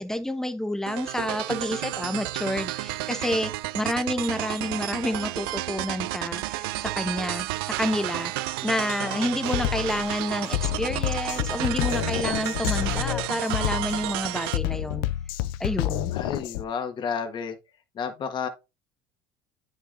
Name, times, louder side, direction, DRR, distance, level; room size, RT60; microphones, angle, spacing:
voice 1, 0.0-8.3 8.6-15.1 15.6-16.1, left 1 dB, 5° left, 1.0 m, -29 dB
sound 1, 0.9-14.6, right 18 dB, 85° right, 0.4 m, -32 dB
Drum kit, 8.8-9.0 9.5-16.6, left 15 dB, 80° left, 0.5 m, -29 dB
voice 2, 16.1-17.5 17.9-18.5, left 6 dB, 40° left, 1.4 m, -31 dB
9.6 x 5.6 x 2.6 m
supercardioid pair, 100°, 12 cm